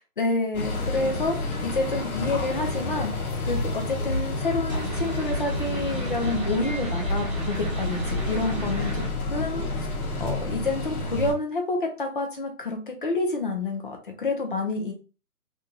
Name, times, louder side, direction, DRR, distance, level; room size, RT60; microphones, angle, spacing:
voice 1, 0.2-1.4 1.6-3.1 3.5-9.1 9.3-9.9 10.2-14.9, left 2 dB, 35° left, 3 dB, 0.5 m, -28 dB
sound 1, 0.5-11.3, left 2 dB, 70° left, 1.0 m, -29 dB
sound 2, 4.7-9.1, right 3 dB, 30° right, 0.5 m, -34 dB
2.6 x 2.2 x 2.8 m, 0.34 s
hypercardioid pair, 155°, 46 cm